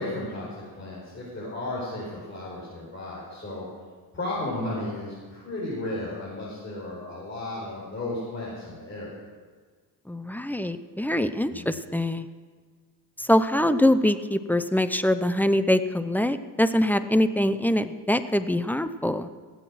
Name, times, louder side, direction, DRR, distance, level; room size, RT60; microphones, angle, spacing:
voice 1, 0.0-3.7 4.1-9.2 11.5-11.9, left 1 dB, 30° left, -7 dB, 4.6 m, -34 dB
voice 2, 10.1-12.3 13.2-19.3, left 1 dB, 5° left, 12 dB, 0.5 m, -24 dB
17.5 x 8.0 x 6.3 m, 1.5 s
cardioid pair, 100°, 40 cm